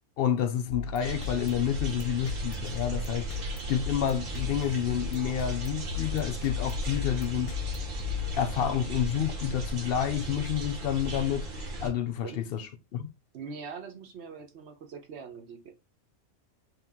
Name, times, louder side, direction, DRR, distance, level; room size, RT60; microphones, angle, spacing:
voice 1, 0.2-3.3 3.7-7.5 8.1-11.5 11.8-13.0, left 9 dB, 60° left, 0.7 m, -29 dB
sound 1, 0.7-8.9, left 7 dB, 90° left, 1.0 m, -37 dB
sound 2, 1.0-11.9, right 1 dB, 85° right, 1.4 m, -36 dB
voice 2, 13.3-15.7, right 5 dB, 60° right, 1.1 m, -42 dB
3.3 x 3.0 x 3.5 m
omnidirectional pair, 1.3 m